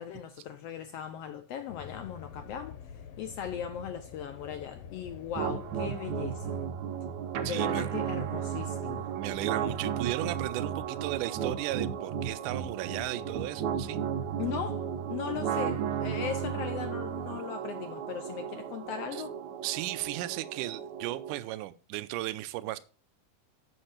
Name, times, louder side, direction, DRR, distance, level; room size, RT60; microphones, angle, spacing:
voice 1, 0.0-2.8 3.2-6.6 7.5-9.1 14.4-19.4, left 8 dB, 80° left, 1.4 m, -38 dB
sound 1, 1.7-6.7, left 7 dB, 65° left, 1.6 m, -46 dB
sound 2, 5.4-21.4, right 8 dB, 70° right, 2.0 m, -34 dB
voice 2, 7.4-7.9 9.2-14.0 19.1-19.2 19.6-22.8, right 16 dB, 85° right, 2.2 m, -35 dB
8.0 x 6.4 x 5.8 m
omnidirectional pair, 3.6 m